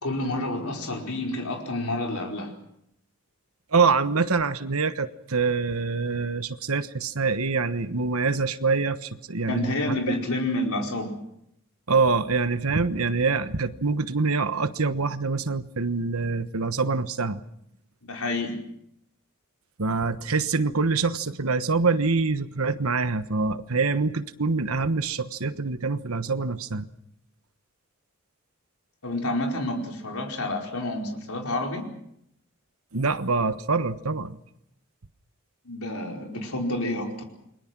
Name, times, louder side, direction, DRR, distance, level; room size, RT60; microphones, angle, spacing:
voice 1, 0.0-2.5 9.5-11.2 18.1-18.6 29.0-31.9 35.6-37.2, left 1 dB, 90° left, 1 dB, 4.8 m, -29 dB
voice 2, 3.7-9.7 11.9-17.4 19.8-26.9 32.9-34.4, right 4 dB, 85° right, 11 dB, 1.2 m, -25 dB
29.5 x 22.0 x 6.1 m, 0.75 s
head